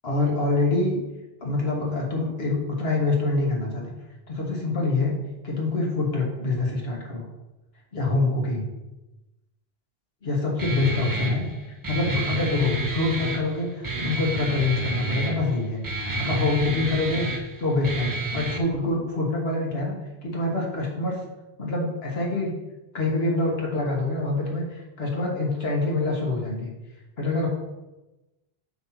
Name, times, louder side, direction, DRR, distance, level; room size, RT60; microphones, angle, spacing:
voice 1, 0.0-1.0 1.4-3.9 4.3-5.1 5.4-7.2 7.9-8.6 10.2-11.5 11.9-20.0 20.2-21.2 21.6-22.5 22.9-26.7 27.2-27.5, left 2 dB, 75° left, -1 dB, 1.8 m, -25 dB
Guitar, 10.6-18.6, right 2 dB, 25° right, 0.6 m, -30 dB
5.8 x 4.2 x 5.8 m, 1.0 s
omnidirectional pair, 1.0 m